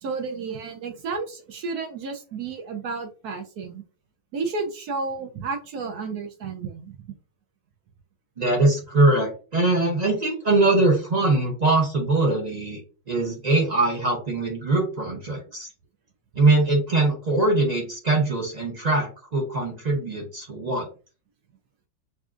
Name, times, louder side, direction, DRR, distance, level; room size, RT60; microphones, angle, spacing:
voice 1, 0.0-3.8 4.3-7.0, right 4 dB, 70° right, 4 dB, 1.0 m, -32 dB
voice 2, 8.4-12.8 13.1-15.7 16.3-20.9, right 2 dB, 40° right, -1 dB, 0.6 m, -22 dB
4.7 x 2.7 x 2.4 m, 0.35 s
omnidirectional pair, 2.1 m